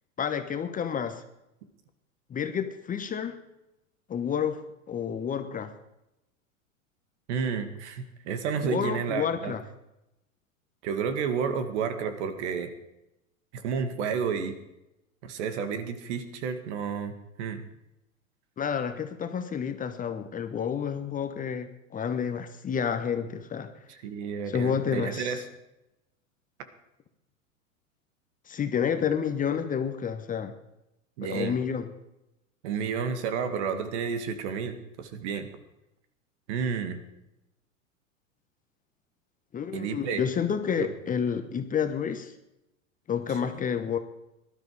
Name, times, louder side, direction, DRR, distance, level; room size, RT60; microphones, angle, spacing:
voice 1, 0.2-1.2 2.3-3.4 4.1-4.6 4.9-5.7 8.6-9.6 18.6-23.7 24.5-25.4 28.5-30.5 31.2-31.9 39.5-42.3 43.1-44.0, left 7 dB, 20° left, 8 dB, 1.1 m, -29 dB
voice 2, 7.3-9.5 10.8-12.7 13.5-14.5 15.2-17.6 23.9-25.4 31.2-31.5 32.6-35.5 36.5-37.0 39.7-40.2 40.8-40.9, right 6 dB, 55° right, 9 dB, 2.1 m, -31 dB
18.5 x 12.5 x 4.9 m, 0.90 s
figure-of-eight pair, 95°, 41 cm